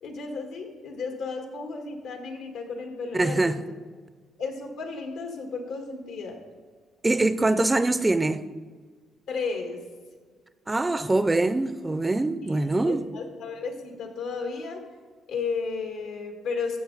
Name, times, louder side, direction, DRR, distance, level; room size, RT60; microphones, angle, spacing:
voice 1, 0.0-3.6 4.4-6.4 9.3-9.8 12.8-14.8 15.3-16.8, left 4 dB, 85° left, 1.8 m, -33 dB
voice 2, 3.1-3.6 7.0-8.4 10.7-13.0, right 2 dB, 15° right, 0.5 m, -23 dB
13.5 x 7.6 x 4.0 m
cardioid pair, 90°, 0 cm